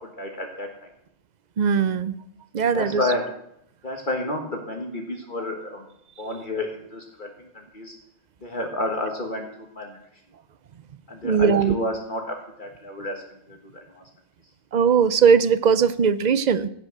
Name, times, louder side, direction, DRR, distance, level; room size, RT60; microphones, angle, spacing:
voice 1, 0.0-0.7 2.7-3.3 3.8-5.9 6.2-8.0 8.4-9.5 9.7-10.0 11.1-13.2 13.5-13.6 13.9-14.0, left 1 dB, 45° left, 1 dB, 1.7 m, -30 dB
voice 2, 1.6-2.2 2.5-3.0 11.2-11.8 14.7-16.7, right 6 dB, 50° right, 15 dB, 0.6 m, -19 dB
16.0 x 5.9 x 7.8 m, 0.77 s
omnidirectional pair, 1.2 m